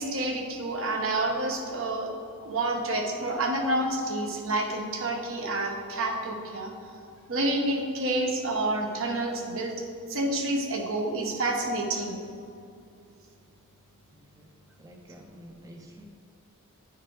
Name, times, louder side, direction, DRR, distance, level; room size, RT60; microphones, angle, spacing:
voice 1, 0.0-2.1 2.4-6.7 7.3-9.7 10.1-12.2, right 2 dB, 65° right, 2 dB, 0.9 m, -29 dB
voice 2, 14.1-16.0, equal, 15° right, 0 dB, 0.5 m, -50 dB
9.9 x 4.3 x 3.8 m, 2.4 s
head